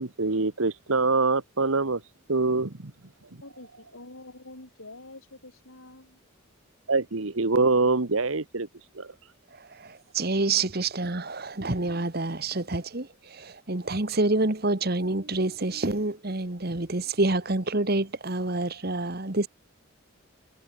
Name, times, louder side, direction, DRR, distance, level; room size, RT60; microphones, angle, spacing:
voice 1, 0.0-2.0 2.3-2.9 6.9-8.7 8.9-9.1, right 3 dB, 75° right, 1.4 m, -24 dB
voice 2, 3.4-6.2, left 2 dB, 80° left, 5.9 m, -46 dB
voice 3, 9.7-19.5, right 2 dB, 45° right, 1.6 m, -27 dB
head